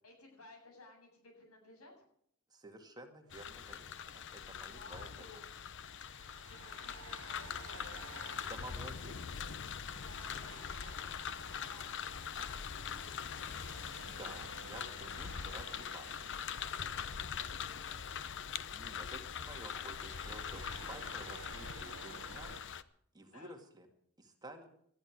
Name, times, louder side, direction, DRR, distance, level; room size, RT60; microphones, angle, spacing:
voice 1, 0.0-1.9 4.7-5.4 6.1-8.5 9.9-11.8 12.3-13.2 16.7-17.0 17.4-18.1 20.7-20.9 23.2-23.5, left 2 dB, 80° left, 2 dB, 7.9 m, -58 dB
voice 2, 2.5-5.4 8.4-9.6 14.0-16.3 18.7-22.6 23.1-23.9 24.2-24.7, right 1 dB, 20° right, 5 dB, 2.1 m, -52 dB
sound 1, 3.2-3.5 5.9-18.3 18.5-18.8 19.5-22.6, right 6 dB, 65° right, 0.8 m, -55 dB
sound 2, 3.3-22.8, left 7 dB, 60° left, 0.8 m, -43 dB
20.0 x 13.5 x 4.8 m, 0.67 s
head